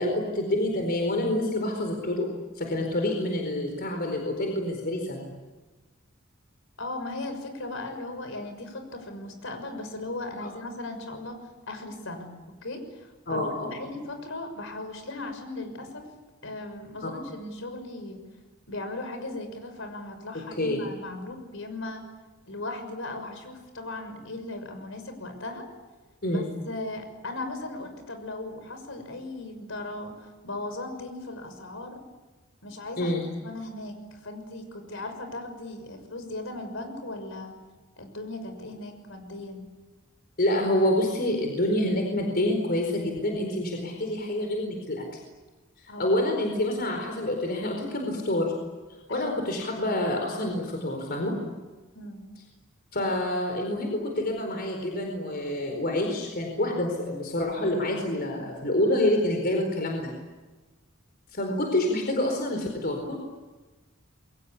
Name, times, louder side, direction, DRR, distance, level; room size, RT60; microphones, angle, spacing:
voice 1, 0.0-2.3 2.6-5.3 10.4-10.5 13.3-13.7 20.6-20.8 26.2-26.5 33.0-33.2 40.4-45.0 46.0-48.5 49.1-51.4 52.9-60.1 61.3-63.2, left 1 dB, 50° left, 3 dB, 4.5 m, -27 dB
voice 2, 6.8-11.4 11.7-12.3 12.6-16.1 16.4-18.2 18.7-22.0 22.5-25.7 26.3-32.0 32.6-37.5 38.0-39.7 45.9-46.2 49.1-49.5 51.9-52.3, left 2 dB, 65° left, 7 dB, 6.3 m, -37 dB
28.5 x 23.0 x 8.6 m, 1.2 s
head